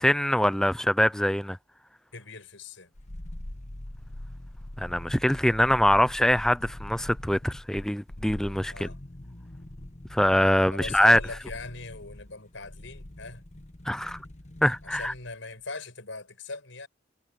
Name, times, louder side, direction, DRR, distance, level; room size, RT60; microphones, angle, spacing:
voice 1, 0.0-1.6 4.8-8.9 10.1-11.2 13.9-14.2 14.6-15.1, left 1 dB, 5° left, 0.4 m, -23 dB
voice 2, 2.1-2.9 8.7-9.0 10.7-13.5 14.8-16.9, left 3 dB, 85° left, 5.2 m, -40 dB
sound 1, 2.9-15.3 15.6-15.7, left 1 dB, 35° left, 1.2 m, -43 dB
head